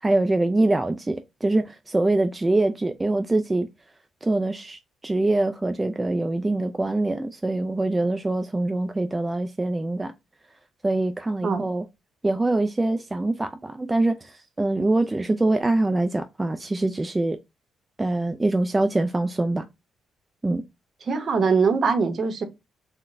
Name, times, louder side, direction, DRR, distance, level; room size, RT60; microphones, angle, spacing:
voice 1, 0.0-3.7 4.2-10.1 10.8-11.8 12.2-17.4 18.0-19.7 20.4-20.6, right 2 dB, 20° right, 0.3 m, -24 dB
voice 2, 21.1-22.4, right 5 dB, 50° right, 0.8 m, -22 dB
3.7 x 2.2 x 2.5 m
hypercardioid pair, 45°, 0 cm